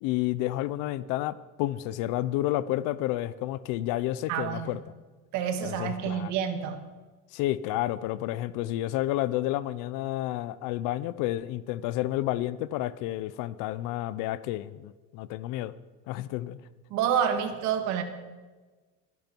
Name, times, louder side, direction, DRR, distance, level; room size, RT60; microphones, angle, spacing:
voice 1, 0.0-4.8 5.6-6.4 7.3-15.7 16.1-16.6, left 15 dB, 70° left, 17 dB, 0.7 m, -30 dB
voice 2, 4.3-4.7 5.3-6.8 16.9-18.0, right 8 dB, 60° right, 7 dB, 1.8 m, -28 dB
24.5 x 11.0 x 4.5 m, 1.3 s
cardioid pair, 175°, 33 cm